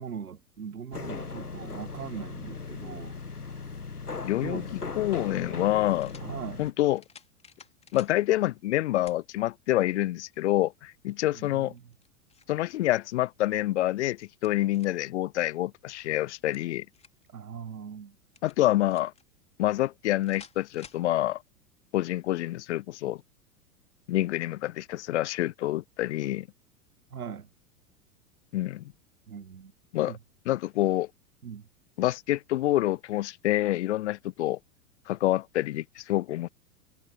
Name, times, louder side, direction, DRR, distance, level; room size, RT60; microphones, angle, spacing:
voice 1, 0.0-3.2 4.4-4.7 6.2-6.6 11.3-11.8 17.3-18.2 27.1-27.5 29.3-29.7 30.0-30.2 31.4-31.7, right 7 dB, 75° right, 1.3 m, -40 dB
sound 1, 0.9-6.7, left 4 dB, 85° left, 1.4 m, -38 dB
voice 2, 4.2-6.1 6.6-7.0 7.9-11.7 12.5-16.9 18.4-19.1 19.6-21.4 21.9-23.2 24.1-26.5 28.5-28.8 29.9-30.2 30.5-31.1 32.0-34.6 35.1-36.5, left 15 dB, 50° left, 0.8 m, -27 dB
sound 2, 5.9-6.3 7.0-8.2 9.1-9.2 9.8-9.9 11.8-12.6 13.9-15.1 16.3-17.3 18.3-19.2 20.2-21.1, left 5 dB, 15° left, 2.6 m, -53 dB
figure-of-eight pair, 95°, 44 cm